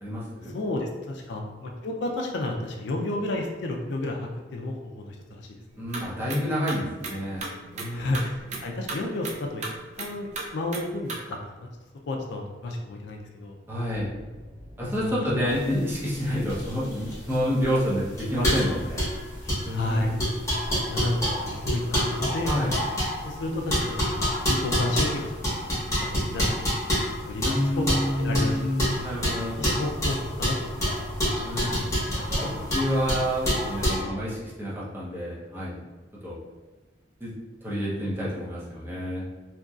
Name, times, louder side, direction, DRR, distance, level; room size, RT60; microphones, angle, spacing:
voice 1, 0.0-0.5 5.8-7.5 7.7-8.2 13.7-14.1 14.8-19.1 19.6-20.3 22.4-22.7 27.4-29.7 31.4-31.8 32.3-35.8 36.2-36.4 37.2-37.3 37.6-39.3, equal, 15° right, -7 dB, 0.7 m, -28 dB
voice 2, 0.5-5.9 7.9-11.7 12.1-13.6 14.8-15.1 15.4-15.5 19.7-20.1 20.9-22.7 23.2-26.8 27.3-28.9 29.6-31.0, left 2 dB, 70° left, 1 dB, 0.4 m, -32 dB
sound 1, 5.7-11.2, right 3 dB, 40° right, 0.4 m, -37 dB
sound 2, 13.7-33.2, equal, 80° right, 1.1 m, -45 dB
sound 3, 15.6-34.0, equal, 15° left, 1.0 m, -28 dB
2.9 x 2.5 x 2.3 m, 1.2 s
head